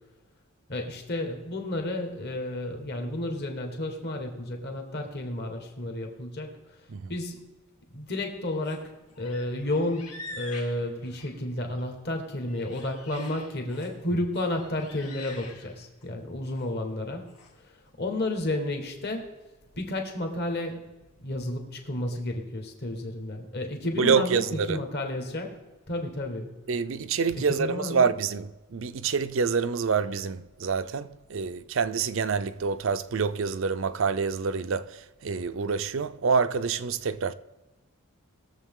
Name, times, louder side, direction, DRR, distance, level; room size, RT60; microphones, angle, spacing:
voice 1, 0.7-6.6 7.1-7.4 7.9-19.3 19.8-20.8 21.2-25.6 25.9-26.5 27.3-28.1, left 1 dB, 45° left, 1.6 m, -32 dB
sound 1, 8.2-8.8 9.1-11.8 12.2-14.0 14.3-16.1 16.4-16.7 17.3-17.5, left 3 dB, 85° left, 2.1 m, -46 dB
voice 2, 24.0-24.8 26.7-37.3, right 5 dB, 60° right, 0.5 m, -27 dB
20.0 x 7.3 x 3.7 m
head